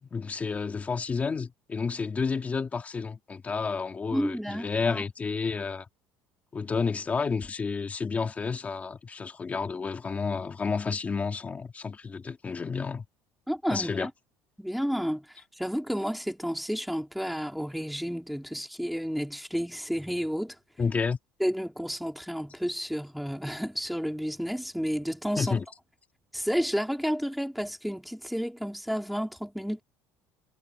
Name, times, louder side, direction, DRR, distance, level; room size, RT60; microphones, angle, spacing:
voice 1, 0.0-5.9 6.5-13.1 13.7-14.1 20.8-21.2 25.4-25.6, left 5 dB, 20° left, 2.2 m, -30 dB
voice 2, 4.1-5.0 13.5-14.1 14.6-20.6 21.4-25.5 26.3-29.8, equal, ahead, 3.0 m, -31 dB
cardioid pair, 145°, 7 cm